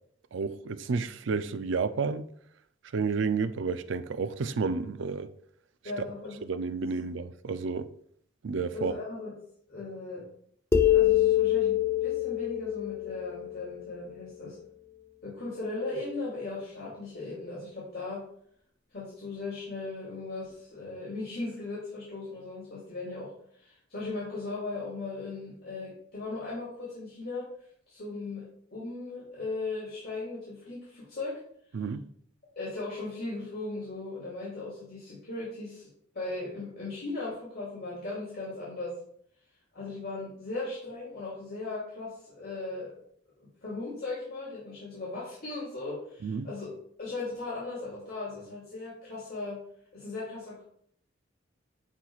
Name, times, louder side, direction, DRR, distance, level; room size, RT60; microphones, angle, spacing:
voice 1, 0.3-2.3 2.9-5.3 6.5-7.9 8.4-8.9 31.7-32.0 46.2-46.5, right 5 dB, 65° right, 0.4 m, -31 dB
voice 2, 5.8-6.5 6.8-6.9 8.7-9.3 9.7-10.2 10.8-14.6 15.2-18.2 18.9-23.3 23.6-27.5 27.9-28.4 28.7-31.4 32.6-35.9 36.1-38.9 39.7-42.9 43.4-46.7 47.0-49.6 49.9-50.6, left 3 dB, 50° left, 2.7 m, -37 dB
sound 1, 10.7-14.2, left 11 dB, 15° left, 0.4 m, -25 dB
11.0 x 4.6 x 2.4 m
head